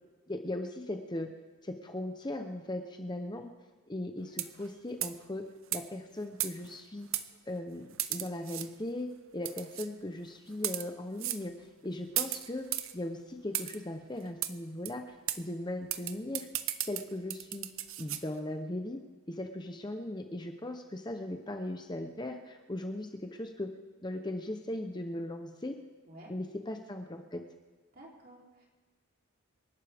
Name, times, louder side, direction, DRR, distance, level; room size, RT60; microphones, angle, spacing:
voice 1, 0.3-1.3 1.6-3.5 3.9-5.5 5.7-7.1 7.5-7.8 8.1-12.6 12.9-16.5 16.8-17.7 18.0-19.0 19.3-23.7 24.0-25.8 26.3-27.4, left 1 dB, 20° left, 5 dB, 0.7 m, -38 dB
sound 1, 4.3-4.7 5.0-5.2 5.7-5.8 6.4-6.8 7.1-7.3 8.0-8.7 9.5-9.9 10.5-10.9 11.2-11.4 12.2-12.9 13.5-13.8 14.4-14.5 14.9-15.0 15.3-15.4 15.9-18.2, right 13 dB, 65° right, 0.7 m, -35 dB
voice 2, 27.9-28.7, right 1 dB, 45° right, -3 dB, 3.4 m, -52 dB
27.0 x 12.0 x 3.5 m, 1.4 s
head